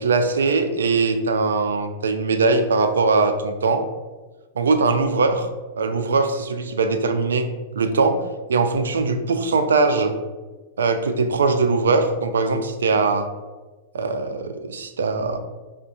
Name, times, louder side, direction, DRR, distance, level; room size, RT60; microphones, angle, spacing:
voice 1, 0.0-3.8 4.6-5.5 5.8-7.5 7.7-8.2 8.5-10.1 10.8-13.3 13.9-15.4, right 4 dB, 90° right, 8 dB, 0.3 m, -21 dB
5.1 x 2.1 x 2.6 m, 1.2 s
hypercardioid pair, 115°, 0 cm